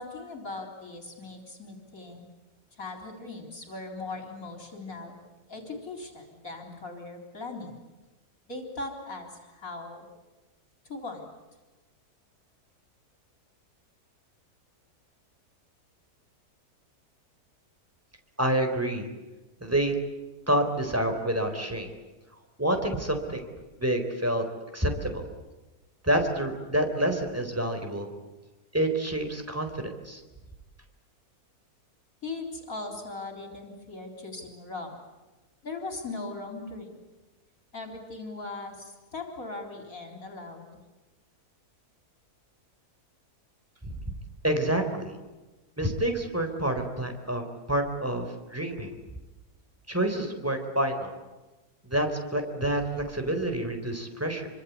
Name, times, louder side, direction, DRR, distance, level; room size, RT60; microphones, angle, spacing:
voice 1, 0.0-2.3 2.7-5.2 5.5-7.7 8.5-10.1 10.8-11.3 32.2-35.0 35.6-37.0 37.7-40.8, left 3 dB, 60° left, 3 dB, 4.4 m, -39 dB
voice 2, 18.4-19.1 19.6-20.0 20.5-21.9 22.6-23.5 23.8-24.5 24.7-25.2 26.0-28.1 28.7-30.2 43.8-44.0 44.4-45.1 45.8-48.9 49.9-51.1 51.8-52.8 53.1-54.5, right 1 dB, 10° right, 5 dB, 4.0 m, -28 dB
27.0 x 25.0 x 8.3 m, 1.1 s
omnidirectional pair, 1.7 m